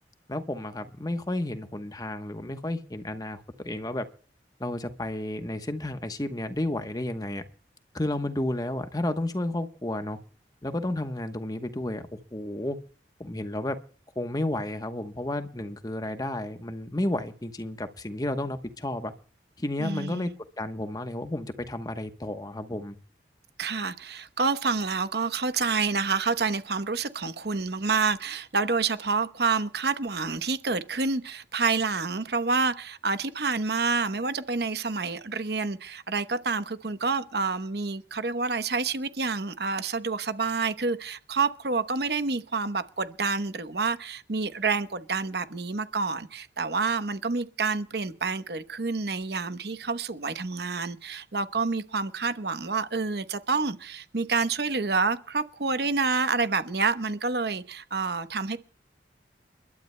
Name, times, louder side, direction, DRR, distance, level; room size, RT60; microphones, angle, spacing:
voice 1, 0.3-4.1 4.6-7.4 7.9-10.2 10.6-12.8 13.2-13.8 14.2-19.1 19.6-20.3 20.6-23.0, left 1 dB, 20° left, 1.0 m, -32 dB
voice 2, 19.8-20.3 23.6-58.6, right 4 dB, 60° right, 0.9 m, -28 dB
30.0 x 12.0 x 2.2 m
head